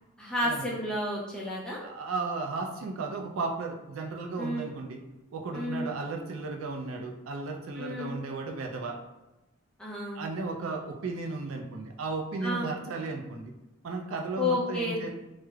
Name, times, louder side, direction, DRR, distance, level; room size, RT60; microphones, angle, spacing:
voice 1, 0.2-1.8 4.4-4.7 5.5-5.9 7.8-8.2 9.8-10.2 12.4-12.7 14.4-15.1, left 1 dB, 5° left, -5 dB, 0.4 m, -31 dB
voice 2, 1.8-5.0 5.3-9.0 10.1-13.5 13.8-15.1, right 3 dB, 80° right, 3 dB, 0.4 m, -35 dB
3.1 x 2.0 x 2.3 m, 1.0 s
head